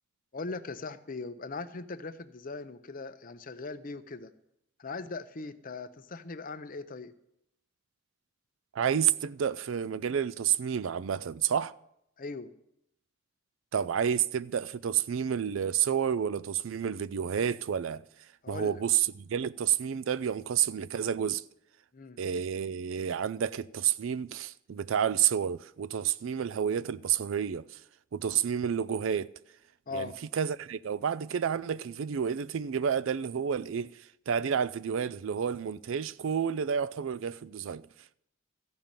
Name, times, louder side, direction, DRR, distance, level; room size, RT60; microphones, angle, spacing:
voice 1, 0.3-4.3 4.8-7.1 12.2-12.5 18.4-18.8 21.9-22.2 29.9-30.2, left 3 dB, 40° left, 0.7 m, -40 dB
voice 2, 8.7-11.7 13.7-18.0 18.5-21.4 22.2-27.8 28.1-29.3 29.9-37.9, right 8 dB, 70° right, 0.4 m, -30 dB
15.0 x 5.3 x 8.9 m
head